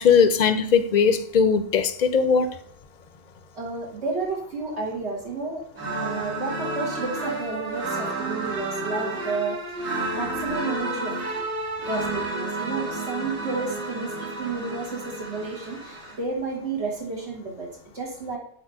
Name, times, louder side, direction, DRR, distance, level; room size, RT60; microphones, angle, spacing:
voice 1, 0.0-2.6, left 6 dB, 55° left, 0.5 m, -19 dB
voice 2, 3.5-5.6 6.0-11.1 11.9-17.7 17.9-18.4, right 3 dB, 80° right, 1.8 m, -31 dB
sound 1, 5.7-16.2, right 2 dB, 55° right, 1.6 m, -31 dB
4.8 x 4.4 x 4.5 m
omnidirectional pair, 1.1 m